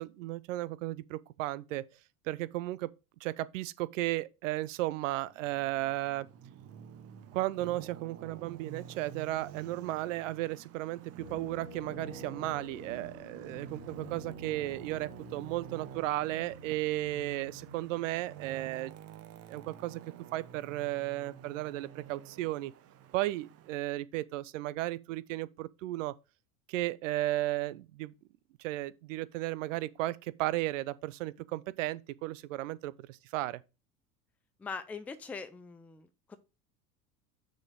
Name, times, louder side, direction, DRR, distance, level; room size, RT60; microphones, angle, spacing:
voice 1, 0.0-1.8 2.3-2.9 3.2-6.3 7.3-18.9 19.5-20.0 20.3-22.7 23.1-26.1 26.7-28.1 28.6-33.6, right 16 dB, 55° right, 0.6 m, -34 dB
Traffic noise roadway noise, 5.3-23.8, right 9 dB, 30° right, 0.9 m, -49 dB
sound 1, 11.2-19.9, left 5 dB, 70° left, 1.1 m, -52 dB
voice 2, 34.6-36.4, left 5 dB, 5° left, 0.4 m, -42 dB
6.3 x 4.3 x 4.7 m
figure-of-eight pair, 80°, 47 cm